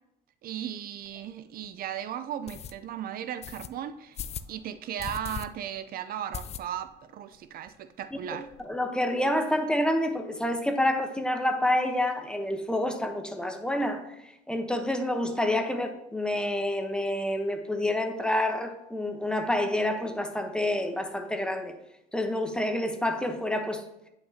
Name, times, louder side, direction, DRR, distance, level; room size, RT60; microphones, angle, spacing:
voice 1, 0.4-4.2 4.5-8.5, right 10 dB, 60° right, 11 dB, 0.5 m, -36 dB
sound 1, 1.1-1.2 1.6-1.7 2.5-2.7 3.4-3.7 4.1-4.5 5.0-5.5 5.8-5.9 6.3-7.0 7.3-7.4 7.7-7.8 8.0-8.6, left 8 dB, 40° left, 0.4 m, -38 dB
voice 2, 8.6-14.0 14.5-21.7 22.1-23.8, left 1 dB, 5° left, 5 dB, 0.9 m, -28 dB
9.0 x 5.7 x 2.8 m, 0.87 s
cardioid pair, 110°, 17 cm